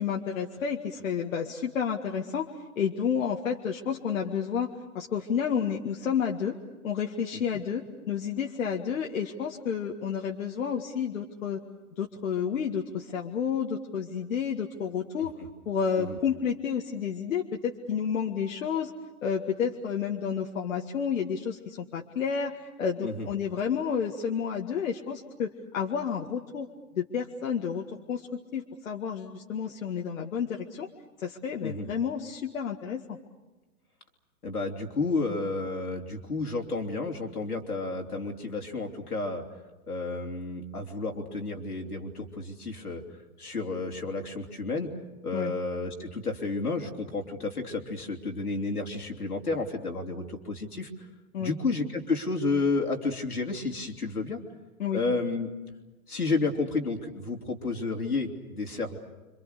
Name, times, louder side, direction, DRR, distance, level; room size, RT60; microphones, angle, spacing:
voice 1, 0.0-6.6 6.8-11.6 12.0-15.3 15.7-18.9 19.2-26.7 26.9-28.3 28.5-30.9 31.2-33.2 45.3-45.5 51.3-51.6 54.8-55.0, left 7 dB, 65° left, 0 dB, 1.9 m, -30 dB
voice 2, 34.4-39.4 39.9-43.0 43.4-44.9 45.2-51.1 51.4-54.4 54.9-55.5 56.1-59.0, left 3 dB, 90° left, 2 dB, 3.4 m, -31 dB
27.5 x 25.5 x 6.8 m, 1.1 s
figure-of-eight pair, 120°, 43 cm